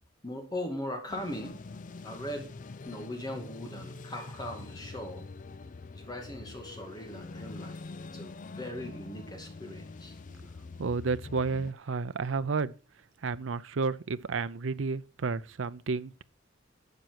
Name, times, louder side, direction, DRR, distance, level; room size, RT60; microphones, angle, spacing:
voice 1, 0.2-1.6 2.0-2.5 2.8-5.3 5.9-10.1, left 1 dB, 20° left, 2.2 m, -39 dB
sound 1, 1.1-11.7, left 3 dB, 40° left, 0.4 m, -45 dB
voice 2, 10.8-12.7 13.2-16.2, right 4 dB, 75° right, 0.5 m, -31 dB
12.0 x 7.6 x 4.6 m
head